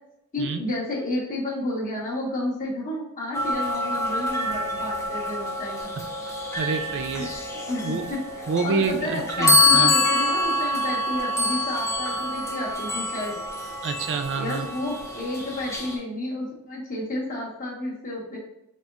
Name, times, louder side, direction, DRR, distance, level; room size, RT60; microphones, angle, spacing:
voice 1, 0.3-5.9 7.1-7.3 7.5-13.4 14.4-18.4, left 2 dB, 40° left, -4 dB, 1.2 m, -31 dB
sound 1, 3.3-16.0, left 1 dB, 15° left, 0.5 m, -26 dB
voice 2, 6.5-7.3 7.8-8.1 8.5-10.0 13.8-14.7, right 5 dB, 55° right, 7 dB, 0.4 m, -27 dB
4.2 x 3.5 x 2.4 m, 0.85 s
head